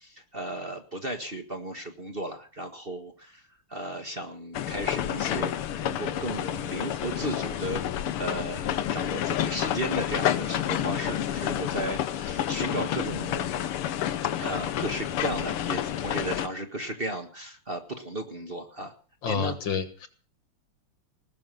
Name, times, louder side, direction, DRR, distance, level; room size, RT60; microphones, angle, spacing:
voice 1, 0.0-3.4 3.7-7.8 8.2-13.5 14.4-18.9 19.2-19.6, right 1 dB, 30° right, 5 dB, 1.6 m, -35 dB
sound 1, 4.5-16.5, left 11 dB, 80° left, 1.9 m, -29 dB
voice 2, 19.2-20.1, left 6 dB, 60° left, 10 dB, 2.1 m, -29 dB
19.5 x 6.6 x 9.3 m, 0.40 s
omnidirectional pair, 2.4 m